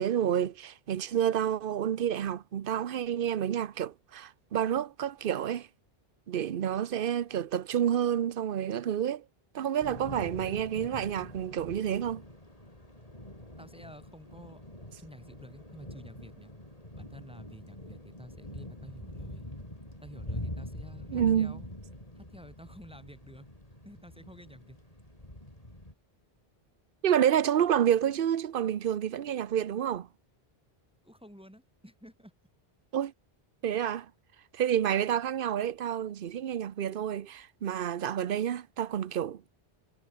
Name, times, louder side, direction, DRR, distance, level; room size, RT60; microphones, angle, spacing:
voice 1, 0.0-5.7 6.3-9.2 9.5-12.2 21.1-21.6 27.0-30.1 32.9-33.1 33.6-34.1 34.5-39.4, right 9 dB, 60° right, 0.9 m, -29 dB
Thunder / Rain, 9.8-25.9, left 1 dB, 35° left, 6.6 m, -44 dB
voice 2, 13.6-14.6 14.9-16.5 17.0-19.5 20.0-21.7 22.1-23.5 23.8-24.8 31.0-32.3, equal, 5° right, 6.5 m, -50 dB
omnidirectional pair, 1.0 m